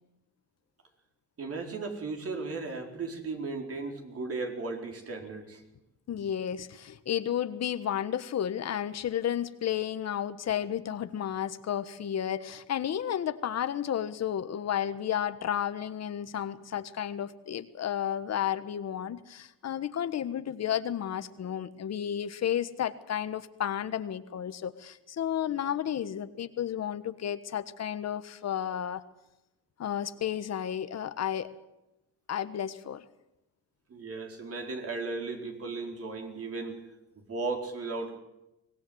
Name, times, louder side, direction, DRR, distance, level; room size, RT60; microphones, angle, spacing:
voice 1, 1.4-5.6 33.9-36.8 37.2-38.2, right 3 dB, 50° right, 3 dB, 4.6 m, -36 dB
voice 2, 6.1-29.0 29.8-31.5 32.3-33.0, left 10 dB, 60° left, 12 dB, 1.4 m, -32 dB
24.0 x 18.5 x 8.0 m, 0.92 s
cardioid pair, 90°, 30 cm